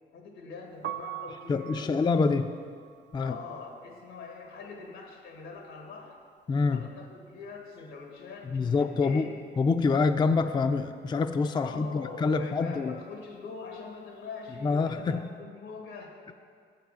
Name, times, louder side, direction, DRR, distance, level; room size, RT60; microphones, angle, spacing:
voice 1, 0.1-2.5 3.2-6.2 6.6-9.3 11.6-16.3, left 4 dB, 90° left, 1 dB, 1.7 m, -43 dB
Piano, 0.7-6.6 6.9-8.5 8.8-15.2, right 14 dB, 60° right, 0.4 m, -46 dB
voice 2, 1.5-2.5 3.1-3.4 6.5-6.9 8.5-9.3 9.6-13.0 14.6-15.3, left 4 dB, 20° left, 8 dB, 0.4 m, -26 dB
7.7 x 6.6 x 6.9 m, 2.1 s
cardioid pair, 90°, 20 cm